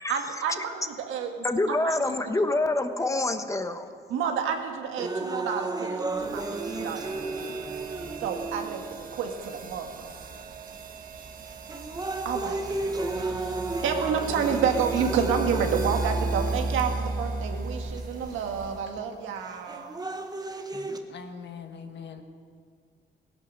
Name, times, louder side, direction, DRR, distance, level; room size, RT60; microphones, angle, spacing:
voice 1, 0.1-2.2 4.1-6.5 6.7-7.6 8.2-10.1 12.1-20.0, right 7 dB, 85° right, 4 dB, 1.7 m, -30 dB
voice 2, 1.4-3.9, left 2 dB, 15° left, 8 dB, 1.1 m, -26 dB
sound 1, 5.0-9.0 9.7-9.8 10.7-11.0 11.5-17.0 18.0-18.1 19.5-21.0, right 2 dB, 20° right, 1.3 m, -33 dB
sound 2, 6.1-19.0, right 3 dB, 45° right, 1.4 m, -35 dB
voice 3, 21.1-22.2, left 6 dB, 60° left, 6 dB, 1.5 m, -41 dB
17.0 x 11.0 x 6.6 m, 2.2 s
cardioid pair, 90°, 20 cm